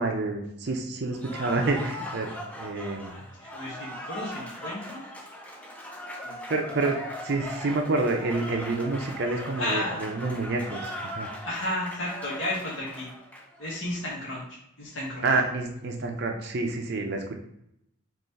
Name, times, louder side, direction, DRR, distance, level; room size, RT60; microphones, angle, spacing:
voice 1, 0.0-3.2 6.5-7.0 7.2-11.3 15.2-17.4, right 3 dB, 50° right, 3 dB, 0.5 m, -28 dB
Cheering / Applause, 1.1-13.7, left 1 dB, 5° left, 0.4 m, -39 dB
voice 2, 3.1-5.0 6.2-6.5 9.6-10.1 11.4-13.1 13.6-14.4 14.8-15.2, left 1 dB, 65° left, -5 dB, 1.0 m, -33 dB
3.5 x 3.0 x 4.0 m, 0.79 s
head